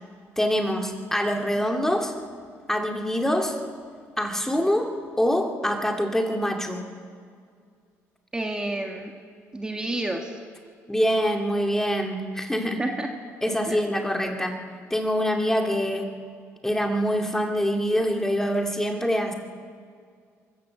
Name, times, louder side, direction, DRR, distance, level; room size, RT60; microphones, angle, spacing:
voice 1, 0.4-2.1 2.7-3.6 4.2-6.8 10.9-12.8 13.4-14.6 14.9-16.1 16.6-19.3, equal, 5° left, 3 dB, 2.3 m, -25 dB
voice 2, 8.3-9.1 9.5-10.3 12.6-13.1 13.7-13.8, right 2 dB, 15° right, 2 dB, 1.9 m, -30 dB
23.5 x 14.5 x 7.7 m, 2.2 s
cardioid pair, 105°, 6 cm